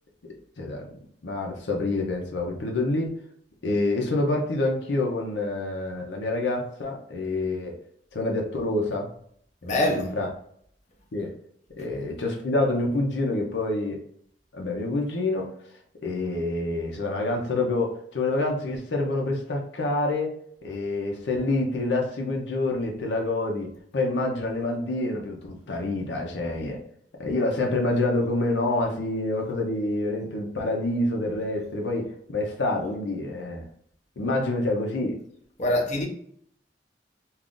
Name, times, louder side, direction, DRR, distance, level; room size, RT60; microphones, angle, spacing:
voice 1, 0.2-0.9 1.2-3.1 3.6-7.7 8.1-9.1 9.7-10.3 11.1-11.3 11.8-14.0 14.5-15.5 16.0-20.3 20.6-26.8 27.2-33.6 34.2-35.2, left 2 dB, 80° left, 0.6 m, -27 dB
voice 2, 9.6-10.1 35.6-36.1, left 1 dB, 40° left, 0.7 m, -24 dB
2.4 x 2.4 x 3.6 m
head